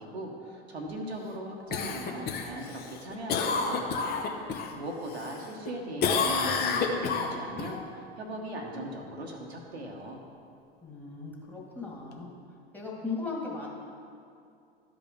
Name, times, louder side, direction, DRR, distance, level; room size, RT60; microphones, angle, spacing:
voice 1, 0.0-4.1 4.4-7.8 8.2-10.2, right 1 dB, 80° right, 0 dB, 1.2 m, -39 dB
Cough, 1.7-4.7 5.1-5.7 6.0-7.7 12.1-12.2, left 5 dB, 30° left, 0.9 m, -29 dB
voice 2, 10.8-12.3 12.7-13.7, left 4 dB, 5° left, -4 dB, 1.9 m, -37 dB
12.5 x 5.1 x 3.6 m, 2.5 s
figure-of-eight pair, 85°, 32 cm